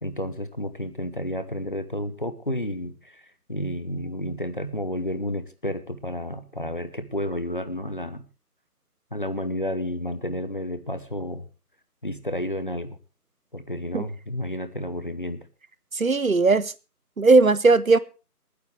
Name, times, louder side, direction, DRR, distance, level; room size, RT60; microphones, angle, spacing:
voice 1, 0.0-8.2 9.1-11.5 12.0-13.0 13.5-15.4, left 1 dB, 30° left, 1.0 m, -31 dB
voice 2, 15.9-16.7 17.2-18.0, right 3 dB, 55° right, 0.8 m, -18 dB
27.5 x 9.6 x 3.3 m
figure-of-eight pair, 160°, 48 cm